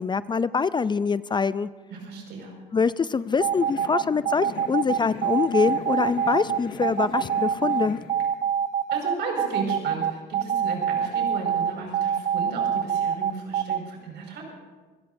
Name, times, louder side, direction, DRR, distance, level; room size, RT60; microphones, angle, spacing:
voice 1, 0.0-1.7 2.7-8.0, left 5 dB, 25° left, 16 dB, 0.4 m, -24 dB
voice 2, 1.9-2.5 8.9-14.5, right 4 dB, 70° right, 0 dB, 5.5 m, -34 dB
sound 1, 3.1-8.3, left 5 dB, 90° left, 1.9 m, -40 dB
sound 2, 3.4-13.8, right 8 dB, 40° right, 0.5 m, -25 dB
26.0 x 17.0 x 2.7 m, 1.3 s
supercardioid pair, 75°, 19 cm